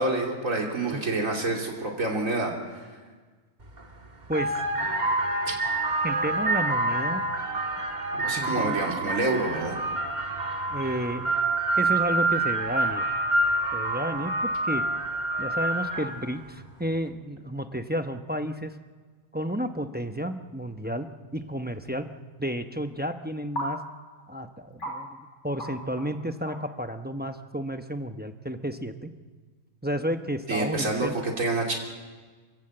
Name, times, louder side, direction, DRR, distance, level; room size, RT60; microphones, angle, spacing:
voice 1, 0.0-2.8 5.5-5.6 8.1-9.8 30.5-31.8, right 2 dB, 80° right, 0 dB, 3.4 m, -28 dB
sound 1, 3.6-3.8 4.2-16.3, right 2 dB, 35° right, 1.9 m, -27 dB
voice 2, 4.3-5.1 6.0-7.2 8.4-8.9 10.7-11.4 11.7-13.0 13.7-14.9 15.4-18.7 19.3-22.1 22.4-23.8 24.3-29.1 29.8-31.2, equal, 10° right, 7 dB, 0.7 m, -32 dB
sound 2, 21.3-21.4 23.6-23.7 24.2-24.3 24.8-25.0 25.6-25.7 26.0-26.1 26.5-26.7, equal, 60° left, 4.0 m, -33 dB
28.0 x 16.0 x 7.9 m, 1.4 s
omnidirectional pair, 1.4 m